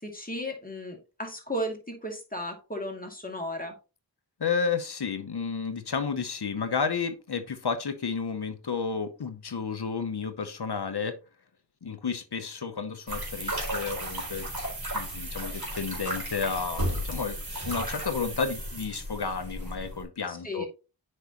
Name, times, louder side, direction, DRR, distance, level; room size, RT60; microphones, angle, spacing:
voice 1, 0.0-3.7 20.3-20.7, equal, 20° left, 2.4 m, -35 dB
voice 2, 4.4-11.2 11.8-14.5 14.9-17.4 17.7-20.6, left 5 dB, 65° left, 0.9 m, -31 dB
sound 1, 13.1-20.0, right 1 dB, 55° right, 3.8 m, -34 dB
8.0 x 5.5 x 2.9 m
wide cardioid pair, 40°, 43 cm